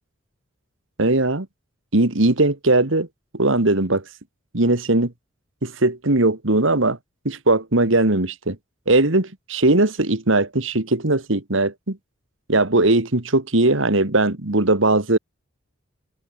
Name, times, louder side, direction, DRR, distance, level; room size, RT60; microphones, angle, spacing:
voice 1, 1.0-1.5 1.9-3.1 3.3-4.0 4.5-5.1 5.6-7.0 7.2-8.6 8.9-12.0 12.5-15.2, right 2 dB, 65° right, 2.1 m, -19 dB
open air
head